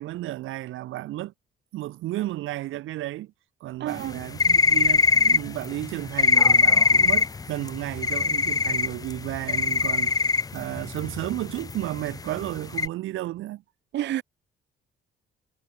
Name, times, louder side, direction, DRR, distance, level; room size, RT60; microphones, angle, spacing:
voice 1, 0.0-1.3 1.7-3.3 3.6-13.6, right 15 dB, 85° right, 1.7 m, -33 dB
voice 2, 3.8-4.2 13.9-14.2, right 12 dB, 65° right, 0.7 m, -29 dB
sound 1, 4.0-12.9, left 4 dB, 20° left, 0.4 m, -21 dB
cardioid pair, 90°, 20 cm